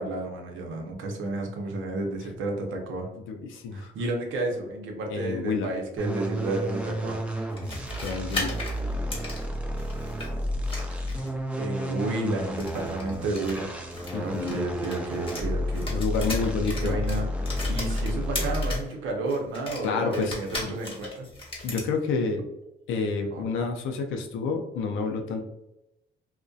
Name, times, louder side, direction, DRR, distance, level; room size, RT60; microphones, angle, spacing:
voice 1, 0.0-3.1 3.7-7.2 11.6-13.7 14.2-15.9 16.8-17.3 17.7-21.3 23.3-23.4, right 2 dB, 80° right, 2 dB, 0.6 m, -31 dB
voice 2, 3.3-3.9 5.1-5.7 8.0-8.6 14.1-14.6 15.9-17.0 19.8-20.3 20.6-20.7 21.6-22.4 22.9-25.4, left 4 dB, 85° left, 4 dB, 0.4 m, -29 dB
sound 1, 6.0-18.9, equal, 5° right, 0.5 m, -31 dB
sound 2, 7.5-10.3 10.7-11.4 12.5-15.5 15.7-18.9 19.3-21.9, left 2 dB, 25° left, 0.8 m, -37 dB
2.5 x 2.1 x 2.3 m, 0.90 s
cardioid pair, 90°, 20 cm